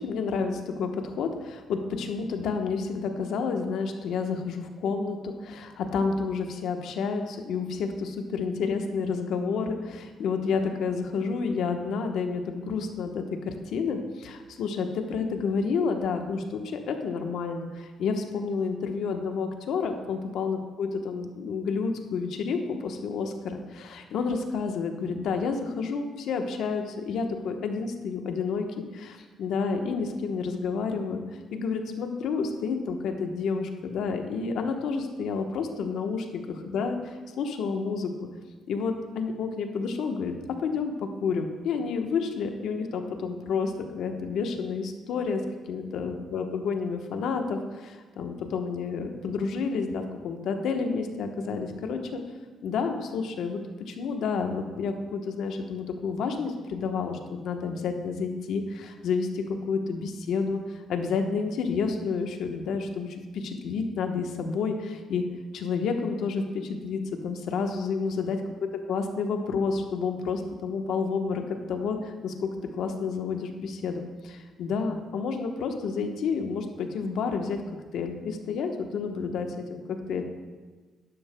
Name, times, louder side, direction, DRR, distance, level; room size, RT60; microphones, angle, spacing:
voice 1, 0.0-31.2 31.5-38.1 38.7-40.3 40.6-52.2 52.6-53.6 53.9-65.2 65.5-68.4 68.9-77.6 77.9-79.8 80.1-80.2, left 5 dB, 80° left, 5 dB, 1.0 m, -30 dB
11.5 x 11.0 x 2.2 m, 1.4 s
cardioid pair, 90°, 0 cm